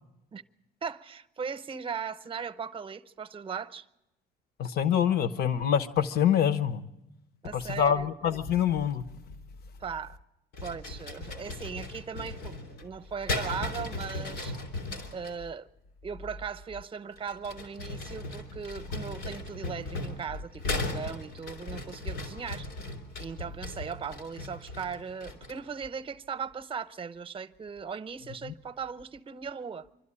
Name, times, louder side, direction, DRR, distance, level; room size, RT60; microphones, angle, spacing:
voice 1, 0.8-3.9 7.4-8.1 9.8-10.2 10.6-14.6 15.1-15.7 16.0-22.7 23.2-29.9, right 6 dB, 30° right, 0.8 m, -38 dB
voice 2, 4.6-6.8 7.5-9.0 28.4-28.5, left 9 dB, 70° left, 1.0 m, -25 dB
sound 1, 10.5-15.4 17.1-25.7, left 2 dB, 85° left, 3.5 m, -37 dB
26.0 x 12.5 x 9.9 m
cardioid pair, 110°, 17 cm